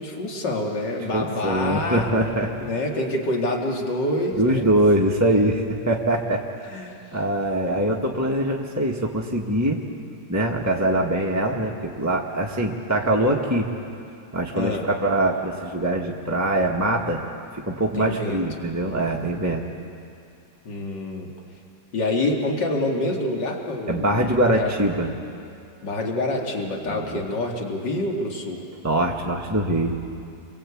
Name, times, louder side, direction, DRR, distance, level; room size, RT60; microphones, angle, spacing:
voice 1, 0.0-2.1 2.6-4.7 6.7-6.9 14.5-14.8 18.0-18.4 20.6-21.3 21.9-24.7 25.8-28.6, left 2 dB, 85° left, 0 dB, 3.1 m, -27 dB
voice 2, 0.8-2.7 4.4-6.4 7.1-9.8 10.3-13.7 14.3-17.2 17.6-19.6 23.9-25.1 26.9-27.2 28.8-30.0, right 1 dB, 10° right, -2 dB, 1.5 m, -23 dB
28.5 x 23.5 x 8.6 m, 2.6 s
omnidirectional pair, 1.9 m